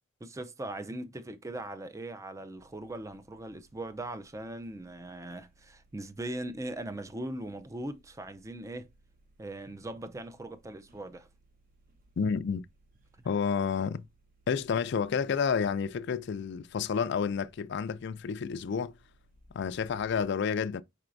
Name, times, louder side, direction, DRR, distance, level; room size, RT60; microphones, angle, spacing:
voice 1, 0.2-8.9 9.4-11.3, right 1 dB, 15° right, 0.4 m, -40 dB
sound 1, 2.6-20.2, right 1 dB, 45° right, 0.9 m, -64 dB
voice 2, 12.2-12.7 13.2-14.1 14.5-19.0 19.5-20.8, left 6 dB, 55° left, 0.3 m, -30 dB
4.7 x 4.4 x 2.5 m
head